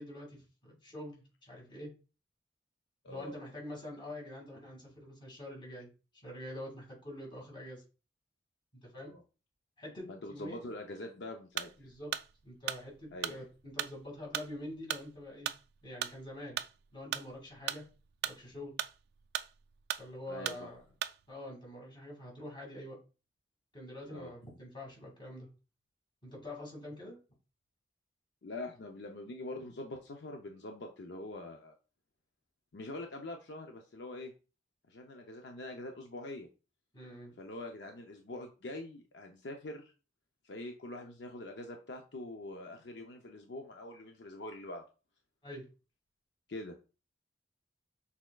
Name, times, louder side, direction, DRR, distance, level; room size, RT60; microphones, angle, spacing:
voice 1, 0.0-1.9 3.1-7.8 8.8-9.1 9.8-10.6 11.8-12.1 12.4-15.5 15.8-16.6 16.9-17.8 18.2-18.7 20.0-20.8 21.3-23.0 23.7-25.5 26.2-27.2 36.9-37.3 45.4-45.6, left 1 dB, 30° left, -2 dB, 2.1 m, -45 dB
voice 2, 10.1-11.7 13.1-13.5 20.3-20.7 24.1-24.3 28.4-31.7 32.7-34.3 34.9-36.5 37.4-39.9 40.4-44.8 46.5-46.8, left 2 dB, 70° left, 3 dB, 0.6 m, -44 dB
sound 1, 11.6-21.3, right 10 dB, 60° right, 0.3 m, -39 dB
6.4 x 3.5 x 2.3 m, 0.33 s
head